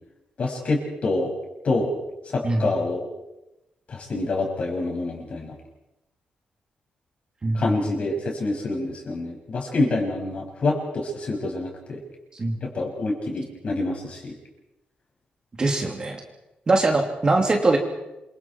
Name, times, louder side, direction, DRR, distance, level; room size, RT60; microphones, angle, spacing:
voice 1, 0.4-1.3 1.6-2.0 2.3-3.0 3.9-5.5 7.5-12.0 12.6-14.3, left 2 dB, 40° left, 1 dB, 6.3 m, -26 dB
voice 2, 7.4-7.8 12.3-12.6 15.6-16.2 16.7-17.8, right 2 dB, 25° right, 2 dB, 2.7 m, -22 dB
28.0 x 25.0 x 4.6 m, 0.94 s
wide cardioid pair, 160°, 3 cm